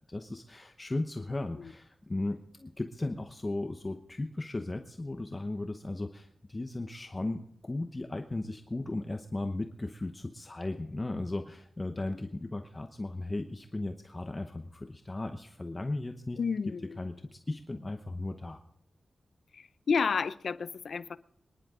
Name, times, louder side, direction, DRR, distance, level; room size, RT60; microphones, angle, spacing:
voice 1, 0.1-16.4 17.0-18.6, left 2 dB, 20° left, 6 dB, 0.9 m, -36 dB
voice 2, 16.4-17.0 19.5-21.2, left 5 dB, 70° left, 15 dB, 0.6 m, -31 dB
25.0 x 11.0 x 3.7 m, 0.77 s
wide cardioid pair, 150°, 0 cm